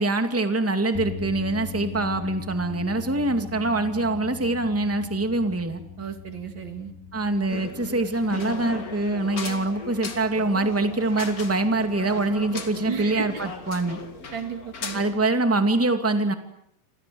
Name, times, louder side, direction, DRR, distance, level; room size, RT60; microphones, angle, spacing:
voice 1, 0.0-5.8 7.1-14.0 14.9-16.3, right 2 dB, 5° right, 7 dB, 1.6 m, -24 dB
sound 1, 0.9-15.2, left 5 dB, 85° left, 6.8 m, -41 dB
voice 2, 6.0-6.9 12.9-13.3 14.3-15.0, right 6 dB, 35° right, 8 dB, 2.9 m, -33 dB
sound 2, 7.5-15.1, left 4 dB, 30° left, 2.1 m, -37 dB
29.5 x 25.5 x 7.9 m, 0.76 s
omnidirectional pair, 4.1 m